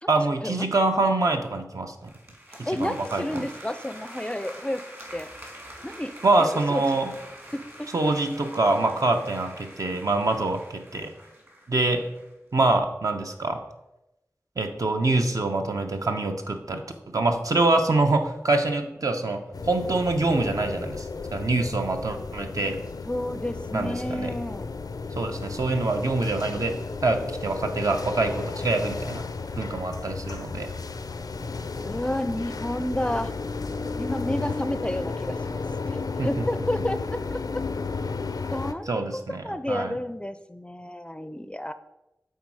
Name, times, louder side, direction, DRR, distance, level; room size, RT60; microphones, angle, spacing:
voice 1, 0.1-2.1 2.6-3.5 6.2-7.2 7.9-11.1 11.7-12.0 12.5-13.6 14.6-16.9 17.1-22.8 23.7-24.3 25.1-29.2 29.6-30.7 36.2-36.4 38.9-40.0, right 2 dB, 65° right, 4 dB, 0.8 m, -25 dB
sound 1, 2.0-12.3, equal, 40° right, 2.0 m, -45 dB
voice 2, 2.7-4.8 5.1-5.3 5.8-7.0 7.5-7.9 23.0-24.7 31.8-33.3 34.0-36.0 36.2-37.4 38.5-39.0 39.3-41.7, left 1 dB, 15° left, 11 dB, 0.4 m, -31 dB
sound 2, 19.5-38.7, left 4 dB, 85° left, 0.4 m, -33 dB
8.2 x 3.8 x 4.7 m, 0.91 s
wide cardioid pair, 50°, 6 cm